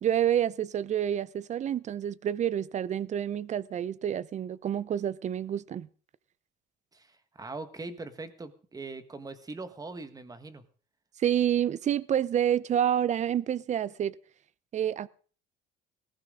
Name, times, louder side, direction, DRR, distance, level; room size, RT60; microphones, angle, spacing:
voice 1, 0.0-5.9 11.2-14.2 14.7-15.1, right 10 dB, 35° right, 0.6 m, -28 dB
voice 2, 6.9-10.6, right 3 dB, 15° right, 1.5 m, -41 dB
19.5 x 15.5 x 3.8 m
cardioid pair, 135°, 21 cm